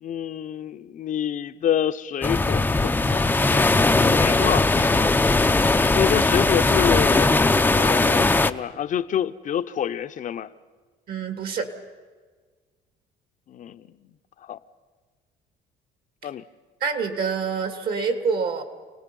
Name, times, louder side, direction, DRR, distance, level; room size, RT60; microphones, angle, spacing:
voice 1, 0.0-5.2 5.9-7.5 7.7-10.5 13.5-13.9 14.4-14.6 16.2-16.4, left 9 dB, 50° left, 0.8 m, -28 dB
sound 1, 2.2-8.5, left 3 dB, 10° left, 0.6 m, -19 dB
voice 2, 11.1-11.7 16.8-18.6, right 5 dB, 60° right, 2.4 m, -26 dB
29.0 x 18.5 x 5.4 m
cardioid pair, 110°, 17 cm